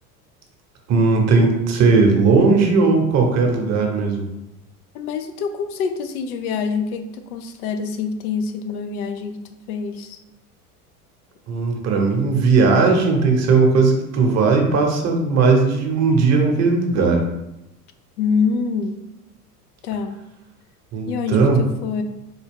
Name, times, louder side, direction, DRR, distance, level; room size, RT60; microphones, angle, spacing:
voice 1, 0.9-4.3 11.5-17.2 20.9-21.6, right 4 dB, 35° right, 2 dB, 0.9 m, -17 dB
voice 2, 4.9-9.4 9.7-10.2 18.2-19.1 19.8-20.2 21.1-22.0, left 5 dB, 70° left, 7 dB, 0.6 m, -25 dB
4.3 x 2.2 x 3.4 m, 0.91 s
hypercardioid pair, 80°, 46 cm